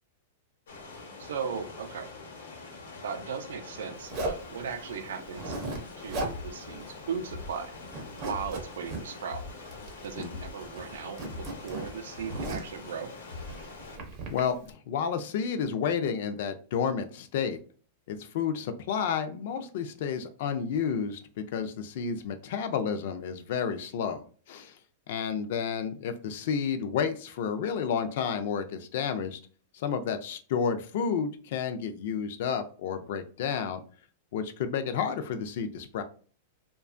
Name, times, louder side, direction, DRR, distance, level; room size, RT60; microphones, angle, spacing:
sound 1, 0.7-14.0, left 3 dB, 90° left, 0.9 m, -45 dB
voice 1, 1.2-2.1 3.0-5.6 6.0-7.7 8.1-9.4 10.0-13.1, right 6 dB, 80° right, 7 dB, 0.4 m, -37 dB
Zipper (clothing), 4.1-4.5 5.2-5.8 6.1-6.4 6.7-6.8 7.2-7.6 7.9-9.0 9.7-10.4 10.6-12.8 13.4-14.4, right 2 dB, 25° right, 0.5 m, -36 dB
sound 2, 5.8-13.7, left 3 dB, 70° left, 1.0 m, -44 dB
voice 2, 10.2-10.5 14.3-17.6 18.1-21.2 21.5-24.2 24.5-24.7 25.1-29.4 29.7-33.8 34.3-36.0, left 7 dB, 50° left, 9 dB, 0.4 m, -31 dB
2.7 x 2.2 x 2.4 m, 0.42 s
supercardioid pair, 175°, 0 cm